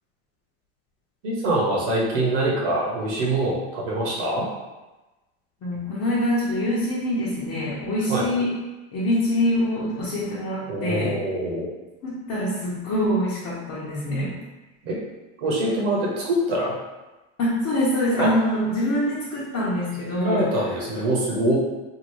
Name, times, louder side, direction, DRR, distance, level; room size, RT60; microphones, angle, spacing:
voice 1, 1.2-4.5 8.1-8.2 10.7-11.7 14.8-15.0 15.4-16.7 18.2-18.3 20.2-21.6, right 1 dB, 80° right, -3 dB, 1.1 m, -24 dB
voice 2, 5.6-8.5 8.9-11.2 12.0-14.3 17.4-20.5, left 1 dB, 50° left, -9 dB, 1.1 m, -24 dB
2.8 x 2.7 x 3.0 m, 1.1 s
supercardioid pair, 90°, 36 cm